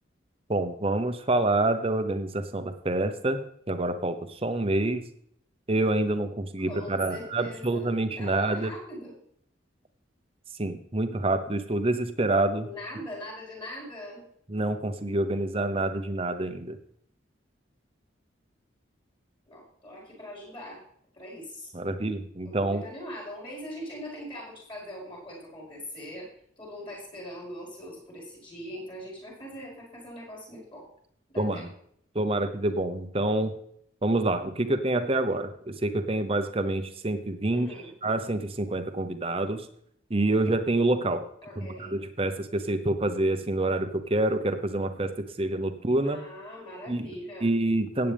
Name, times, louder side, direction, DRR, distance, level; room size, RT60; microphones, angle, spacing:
voice 1, 0.5-3.4 3.7-5.1 5.7-8.7 10.6-12.7 14.5-16.8 21.7-22.8 31.4-31.7 32.1-33.5 34.0-37.7 38.0-39.7 40.1-41.2 41.6-45.1 45.4-46.2 46.9-47.1 47.4-48.1, right 2 dB, 30° right, 9 dB, 0.9 m, -27 dB
voice 2, 6.7-9.1 12.6-14.2 19.5-20.8 21.1-21.7 22.4-26.3 26.6-30.9 31.3-31.7 37.5-37.9 41.4-42.0 46.0-47.5, left 1 dB, 25° left, -4 dB, 5.3 m, -41 dB
16.0 x 8.9 x 3.5 m, 0.67 s
head